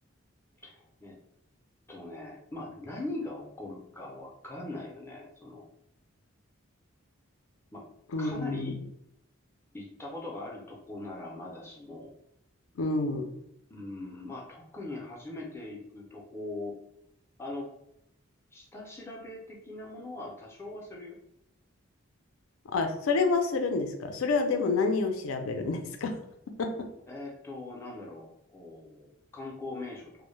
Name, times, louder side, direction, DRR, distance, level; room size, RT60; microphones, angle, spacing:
voice 1, 0.6-1.1 1.9-5.6 7.7-7.9 8.2-8.8 9.7-12.1 13.7-16.8 17.4-17.7 18.5-21.2 27.1-30.1, left 2 dB, 10° left, -2 dB, 0.4 m, -41 dB
voice 2, 8.1-8.7 12.8-13.3 22.7-26.2 26.6-26.9, left 3 dB, 75° left, 5 dB, 0.4 m, -28 dB
2.1 x 2.0 x 3.0 m, 0.78 s
head